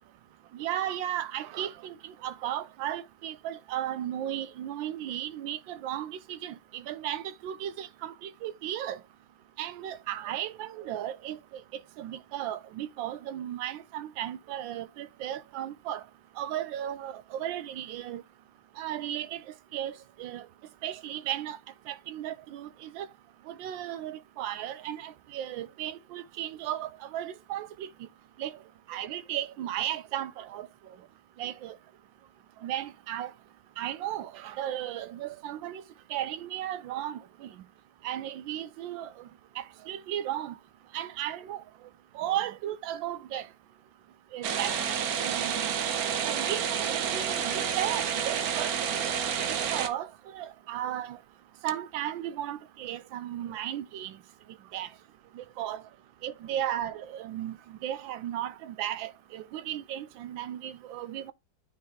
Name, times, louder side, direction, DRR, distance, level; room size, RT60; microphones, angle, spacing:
voice 1, 0.5-9.0 9.6-11.6 12.0-16.0 16.4-18.2 18.8-19.4 19.7-20.5 20.8-21.6 21.9-23.1 23.5-27.9 28.4-28.5 28.9-30.7 31.4-31.8 32.6-33.3 33.8-35.8 36.1-37.5 38.0-39.1 39.6-40.6 40.9-41.6 42.1-43.5 44.3-44.8 45.2-45.8 46.2-49.0 49.5-51.2 51.6-54.2 54.7-54.9 55.3-55.8 56.2-61.3, right 11 dB, 85° right, 1.3 m, -35 dB
sound 1, 44.4-49.9, right 8 dB, 60° right, 1.2 m, -29 dB
8.9 x 3.7 x 4.2 m
omnidirectional pair, 2.0 m